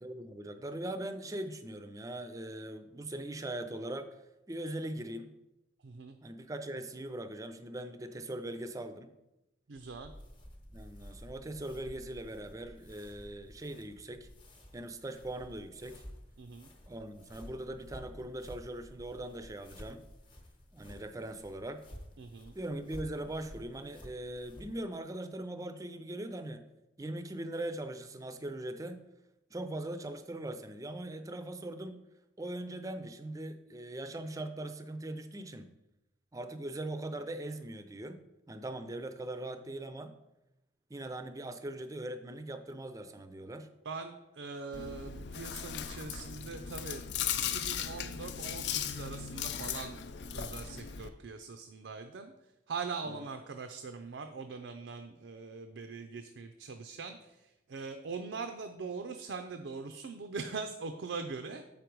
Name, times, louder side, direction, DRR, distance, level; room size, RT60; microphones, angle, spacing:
voice 1, 0.0-4.1 4.5-5.3 6.2-9.1 10.7-14.3 14.7-16.0 16.9-20.1 20.7-21.9 22.5-26.6 27.0-29.0 29.5-32.0 32.4-35.7 36.3-38.2 38.5-40.1 40.9-43.7 53.1-53.3, right 1 dB, 20° right, 10 dB, 0.4 m, -40 dB
voice 2, 5.8-6.2 9.7-10.1 16.4-16.7 22.2-22.5 43.8-47.1 47.4-50.0 50.3-52.3 52.7-61.6, right 4 dB, 90° right, 7 dB, 0.5 m, -42 dB
sound 1, 9.8-24.8, equal, 25° left, 0.9 m, -52 dB
Chewing mastication, 44.7-51.1, left 8 dB, 70° left, 0.5 m, -37 dB
7.4 x 5.1 x 4.6 m, 0.94 s
head